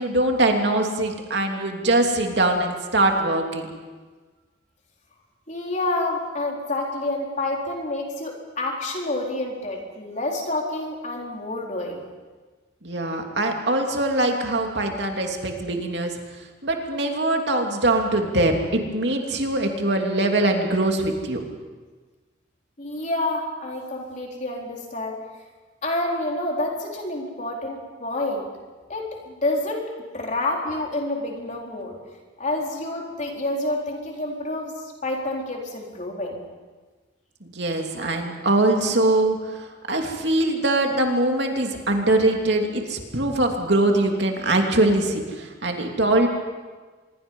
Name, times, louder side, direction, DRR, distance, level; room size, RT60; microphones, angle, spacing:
voice 1, 0.0-3.7 12.8-16.1 16.6-21.4 37.4-39.4 39.9-46.3, right 2 dB, 65° right, 2 dB, 2.9 m, -22 dB
voice 2, 5.5-12.0 22.8-25.2 25.8-28.5 28.9-32.0 32.4-34.7 35.0-36.4, left 2 dB, 40° left, 0 dB, 4.1 m, -28 dB
25.5 x 22.5 x 5.5 m, 1.3 s
head